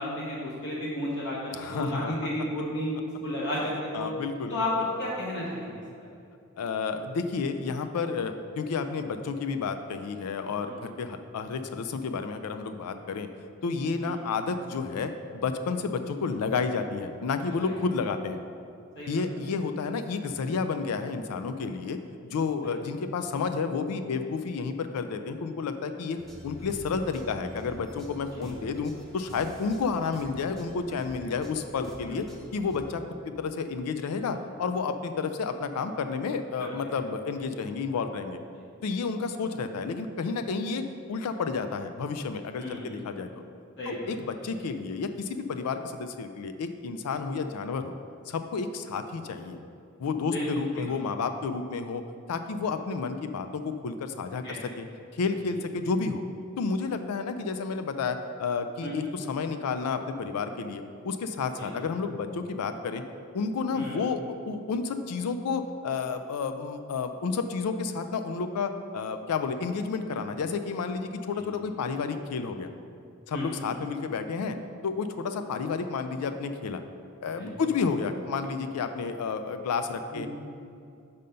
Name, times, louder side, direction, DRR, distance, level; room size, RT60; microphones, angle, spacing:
voice 1, 0.0-2.9 3.2-4.1 4.5-6.1 10.6-10.8 14.0-14.1 17.6-17.7 19.0-19.2 22.6-22.7 28.3-28.5 32.1-32.2 36.6-36.7 42.6-43.0 43.8-44.1 50.3-50.5 50.8-50.9 54.4-54.6 58.8-59.1 61.6-61.7 63.7-64.0 73.3-73.6 77.4-77.5 80.1-80.3, left 1 dB, 55° left, -5 dB, 1.0 m, -33 dB
voice 2, 1.5-2.1 3.9-4.8 6.6-13.3 13.6-18.4 19.1-22.0 22.2-26.2 26.4-32.3 32.5-38.4 38.8-43.3 43.9-48.0 48.3-49.6 50.0-52.0 52.3-54.9 55.1-56.2 56.6-63.0 63.3-72.7 73.3-74.6 74.8-76.8 77.2-80.3, left 5 dB, 85° left, 8 dB, 0.4 m, -31 dB
sound 1, 26.2-32.8, equal, ahead, 0.6 m, -46 dB
5.6 x 5.2 x 5.2 m, 2.5 s
head